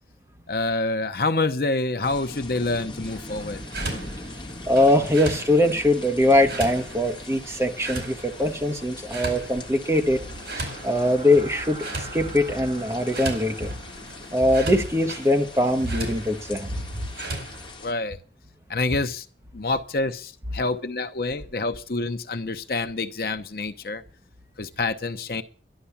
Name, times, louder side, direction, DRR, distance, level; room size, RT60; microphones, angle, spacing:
voice 1, 0.5-3.6 17.8-18.2 18.7-19.3 19.5-24.0 24.6-25.4, left 3 dB, 55° left, 0.8 m, -27 dB
sound 1, 2.0-17.9, left 2 dB, 25° left, 1.5 m, -41 dB
sound 2, 3.0-17.7, right 2 dB, 80° right, 4.8 m, -37 dB
voice 2, 4.7-10.2 10.6-13.8 14.3-16.8, left 1 dB, 15° right, 1.2 m, -22 dB
sound 3, 9.9-18.0, right 1 dB, 35° right, 5.4 m, -45 dB
11.5 x 11.5 x 7.2 m
head